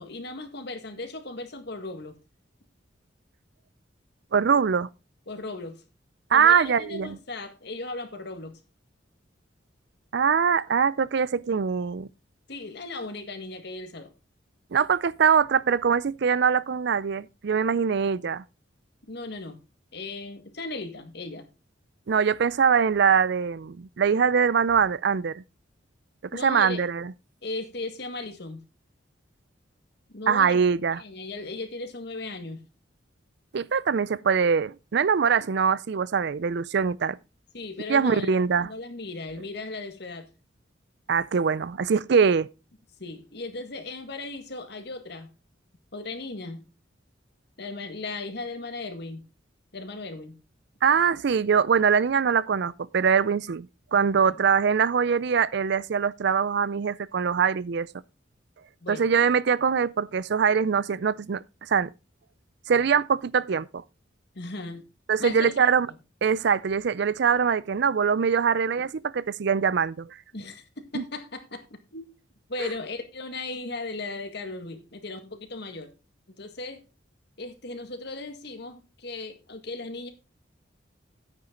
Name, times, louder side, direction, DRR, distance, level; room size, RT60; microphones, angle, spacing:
voice 1, 0.0-2.2 5.3-5.8 6.3-8.6 12.5-14.1 19.1-19.6 19.9-21.5 26.3-26.8 27.4-28.6 30.1-30.6 31.0-32.6 37.5-40.3 43.0-45.3 45.9-46.7 47.6-49.2 49.7-50.4 54.3-54.4 58.8-59.1 64.3-64.9 65.2-65.5 70.3-71.6 71.9-72.1 72.5-75.9 76.4-76.8 77.4-80.1, left 3 dB, 60° left, 1.9 m, -37 dB
voice 2, 4.3-4.9 6.3-7.2 10.1-12.1 14.7-18.4 22.1-25.4 26.4-27.1 30.3-31.0 33.5-37.2 37.9-38.7 41.1-42.5 50.8-57.9 58.9-61.9 62.7-63.8 65.1-65.9 66.2-70.2 70.9-71.0 72.6-72.7, right 6 dB, 60° right, 0.4 m, -23 dB
9.8 x 9.2 x 3.8 m
head